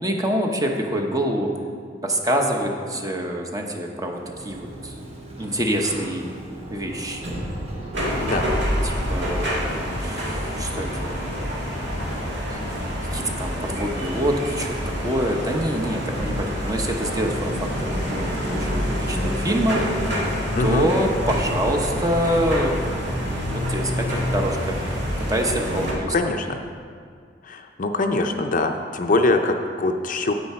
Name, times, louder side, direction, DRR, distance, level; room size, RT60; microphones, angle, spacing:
voice 1, 0.0-1.5 2.0-5.0 5.4-6.3 6.7-7.3 8.8-11.3 12.5-12.6 13.1-19.8 20.6-22.8 23.2-24.8 25.3-26.1, equal, 20° right, 2 dB, 0.9 m, -26 dB
Sliding door, 4.0-8.9, right 1 dB, 35° right, 1.3 m, -37 dB
sound 1, 7.9-25.9, equal, 80° right, 2.1 m, -27 dB
voice 2, 8.2-8.5 20.5-20.9 25.7-26.6 27.4-30.3, left 2 dB, 50° left, 5 dB, 0.6 m, -23 dB
9.4 x 8.3 x 4.3 m, 2.1 s
head